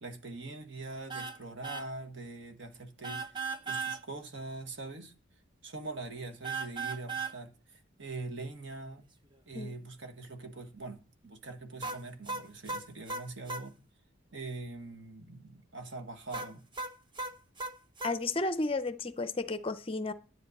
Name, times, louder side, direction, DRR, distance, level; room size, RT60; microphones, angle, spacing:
voice 1, 0.0-3.3 3.6-5.1 5.6-9.0 9.5-13.8 14.3-16.6, right 3 dB, 60° right, 1.5 m, -43 dB
sound 1, 1.1-1.4 1.6-1.9 3.0-4.0 6.4-7.4 11.8-13.7 16.3-18.2, right 4 dB, 20° right, 0.8 m, -37 dB
voice 2, 18.0-20.1, left 3 dB, 25° left, 0.5 m, -32 dB
10.5 x 9.6 x 4.1 m
head